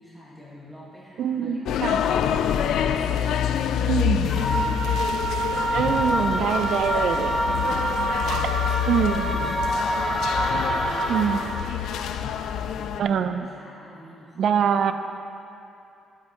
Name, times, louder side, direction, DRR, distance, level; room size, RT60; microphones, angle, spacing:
voice 1, 0.0-5.0 7.2-11.6 12.1-14.9, equal, 10° right, -8 dB, 1.8 m, -45 dB
voice 2, 1.2-2.0 3.9-4.4 5.7-7.7 8.3-8.5 8.9-9.3 11.1-11.4 13.0-13.5 14.4-14.9, right 7 dB, 65° right, 9 dB, 0.5 m, -24 dB
sound 1, 1.7-13.0, left 9 dB, 80° left, 0.3 m, -27 dB
sound 2, 4.2-11.4, right 3 dB, 40° left, 1.8 m, -28 dB
sound 3, 4.5-11.8, left 1 dB, 25° left, 2.1 m, -30 dB
12.5 x 8.3 x 3.1 m, 2.7 s
cardioid pair, 90°, 0 cm